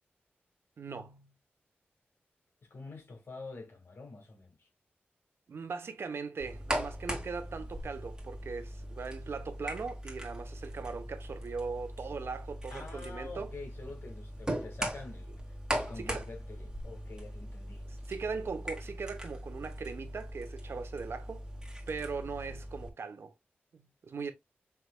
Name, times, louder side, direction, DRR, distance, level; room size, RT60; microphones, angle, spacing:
voice 1, 0.8-1.3 5.5-13.5 16.0-16.3 17.9-21.5 21.9-23.3 23.7-24.3, right 4 dB, 75° right, 0.8 m, -39 dB
voice 2, 2.6-4.7 12.7-17.8, left 3 dB, 65° left, 1.7 m, -47 dB
sound 1, 6.4-22.9, right 1 dB, 20° right, 1.7 m, -40 dB
5.7 x 3.1 x 2.2 m
cardioid pair, 60°, 4 cm